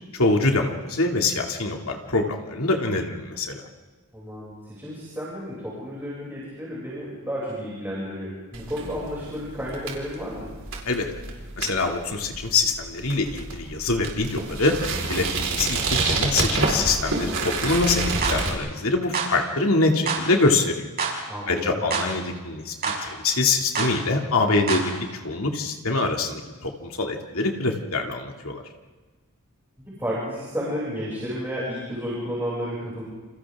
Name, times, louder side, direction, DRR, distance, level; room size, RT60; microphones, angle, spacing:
voice 1, 0.1-3.6 10.9-11.1 11.6-20.9 21.5-24.9 25.2-28.6, left 3 dB, 70° left, 2 dB, 2.7 m, -24 dB
voice 2, 4.1-10.5 21.3-22.0 29.8-33.1, equal, 10° right, -7 dB, 6.8 m, -32 dB
sound 1, 8.5-18.5, right 3 dB, 65° right, 4.7 m, -28 dB
sound 2, 18.2-18.4 19.1-19.3 20.1-20.2 21.0-21.2 21.9-22.1 22.8-23.0 23.8-23.9 24.7-24.9, right 5 dB, 45° right, 5.5 m, -26 dB
29.5 x 28.5 x 3.7 m, 1.4 s
head